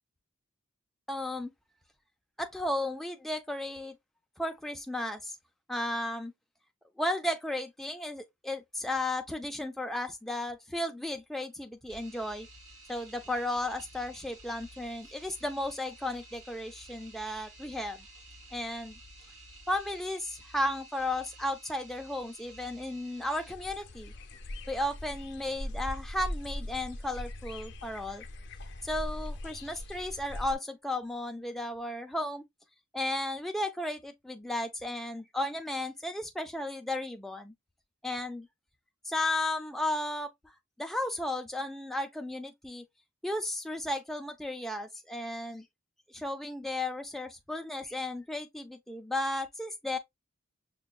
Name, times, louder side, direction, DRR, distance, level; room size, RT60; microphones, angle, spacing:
voice 1, 1.1-1.5 2.4-3.9 4.4-5.4 5.7-6.3 7.0-12.5 12.9-18.0 18.5-19.0 19.7-24.1 24.7-28.2 28.8-32.4 32.9-37.5 38.0-38.5 39.0-40.3 40.8-42.8 43.2-45.6 46.1-50.0, left 1 dB, ahead, 0.4 m, -34 dB
sound 1, 11.9-23.5, right 1 dB, 80° right, 2.1 m, -52 dB
sound 2, 23.5-30.5, left 1 dB, 55° left, 0.6 m, -40 dB
6.0 x 2.2 x 2.3 m
head